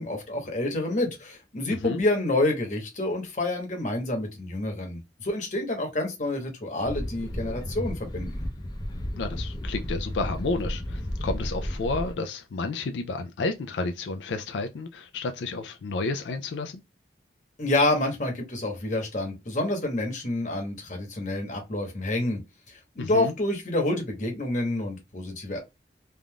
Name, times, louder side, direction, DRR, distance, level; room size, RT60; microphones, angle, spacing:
voice 1, 0.0-8.4 17.6-22.4 22.7-25.6, left 2 dB, 45° left, 1.0 m, -28 dB
voice 2, 1.7-2.0 9.1-16.8 23.0-23.3, left 3 dB, 90° left, 0.4 m, -31 dB
sound 1, 6.8-12.1, equal, 25° left, 0.5 m, -33 dB
3.4 x 2.5 x 2.2 m
head